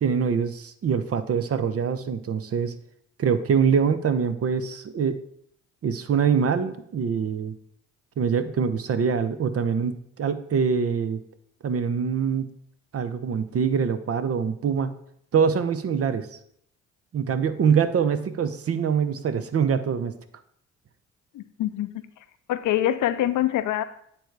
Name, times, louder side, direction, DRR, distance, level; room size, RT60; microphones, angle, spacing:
voice 1, 0.0-2.7 3.2-5.2 5.8-7.5 8.2-11.2 11.6-12.5 12.9-14.9 15.3-16.3 17.1-20.1, right 6 dB, 40° right, 11 dB, 0.7 m, -24 dB
voice 2, 21.3-21.9 22.5-23.8, left 12 dB, 60° left, 12 dB, 0.6 m, -24 dB
8.8 x 3.4 x 4.6 m, 0.68 s
hypercardioid pair, 50°, 35 cm